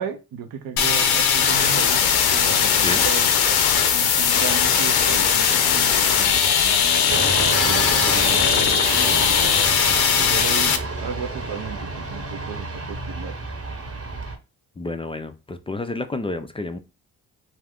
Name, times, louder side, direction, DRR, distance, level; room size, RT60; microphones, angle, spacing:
voice 1, 0.0-2.0 2.3-3.3 3.9-6.3 7.5-9.5 10.2-10.7 11.0-13.3, right 7 dB, 70° right, 0.6 m, -34 dB
sound 1, 0.8-10.8, left 7 dB, 80° left, 0.6 m, -19 dB
sound 2, 7.1-14.4, right 3 dB, 40° right, 0.9 m, -29 dB
voice 2, 14.8-16.8, left 2 dB, 15° left, 0.4 m, -30 dB
2.4 x 2.4 x 3.4 m
supercardioid pair, 50°, 38 cm